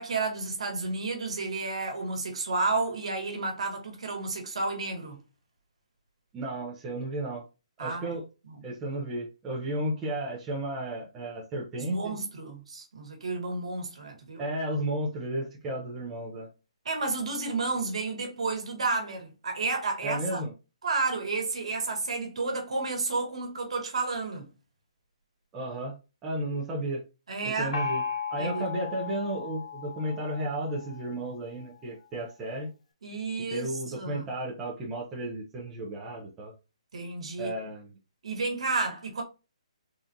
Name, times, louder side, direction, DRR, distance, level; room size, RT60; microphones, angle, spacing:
voice 1, 0.0-5.2 7.8-8.2 8.5-8.6 11.8-14.4 16.8-20.4 20.8-24.5 27.3-27.8 28.4-28.6 33.0-34.2 36.9-37.5 38.2-39.2, right 3 dB, 60° right, 1.2 m, -31 dB
voice 2, 6.3-7.5 7.8-8.2 8.6-12.2 14.4-16.5 20.0-20.5 25.5-26.0 26.2-27.0 27.4-28.0 28.3-32.7 33.4-36.5 37.4-37.9, right 1 dB, 10° right, 0.4 m, -33 dB
Gong, 27.7-31.2, left 5 dB, 85° left, 0.6 m, -36 dB
3.6 x 2.3 x 2.6 m
hypercardioid pair, 180°, 4 cm